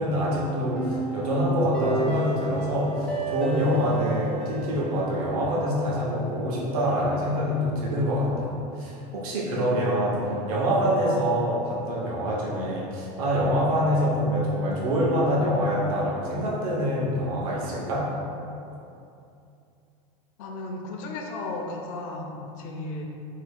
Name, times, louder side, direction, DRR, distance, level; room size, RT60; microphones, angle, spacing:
voice 1, 0.0-10.2 10.5-18.1, equal, 85° right, -5 dB, 0.9 m, -25 dB
sound 1, 0.7-5.8, right 3 dB, 5° left, 0.4 m, -32 dB
voice 2, 20.4-23.0, left 2 dB, 70° left, 1 dB, 0.5 m, -34 dB
2.8 x 2.7 x 3.4 m, 2.6 s
supercardioid pair, 125°, 18 cm